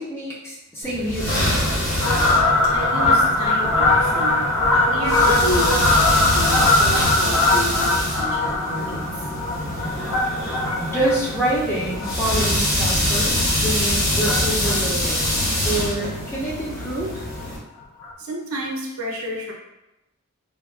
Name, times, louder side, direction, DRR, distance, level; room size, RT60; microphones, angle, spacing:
voice 1, 0.0-1.7 10.8-15.3 15.6-17.3, right 1 dB, 10° left, -6 dB, 0.5 m, -26 dB
sound 1, 0.8-17.6, left 1 dB, 45° left, 0.9 m, -25 dB
Fowl, 2.0-12.8 13.3-13.5 14.2-14.8 15.1-15.2 15.4-15.5 15.8-15.9 16.2-16.4 17.4-17.5 18.0-18.1, left 2 dB, 65° left, 0.5 m, -20 dB
voice 2, 2.7-4.5 4.8-9.2 18.2-19.5, right 1 dB, 70° right, -1 dB, 0.6 m, -30 dB
3.3 x 2.2 x 2.3 m, 0.93 s
head